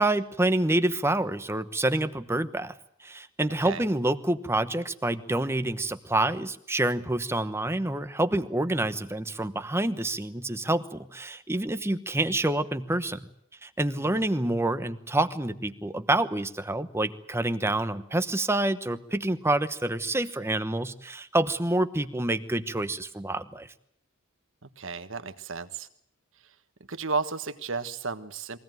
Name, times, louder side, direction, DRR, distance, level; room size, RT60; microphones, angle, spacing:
voice 1, 0.0-2.7 3.0-13.3 13.6-23.7, right 1 dB, 10° right, 10 dB, 1.0 m, -27 dB
voice 2, 24.6-25.9 26.9-28.6, right 4 dB, 65° right, 10 dB, 1.4 m, -33 dB
23.0 x 17.0 x 9.3 m, 0.69 s
head